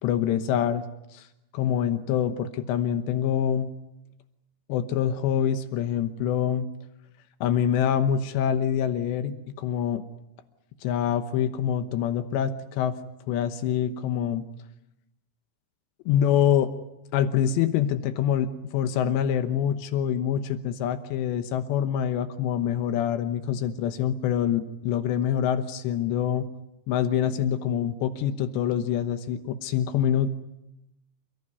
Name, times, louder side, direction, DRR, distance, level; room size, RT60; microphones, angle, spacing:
voice 1, 0.0-0.8 1.1-1.3 1.5-3.7 4.7-6.7 7.4-10.0 10.8-12.9 13.3-14.4 16.1-16.7 17.1-26.5 26.9-30.3, left 9 dB, 90° left, 9 dB, 3.4 m, -25 dB
28.5 x 17.5 x 9.6 m, 0.89 s
omnidirectional pair, 4.9 m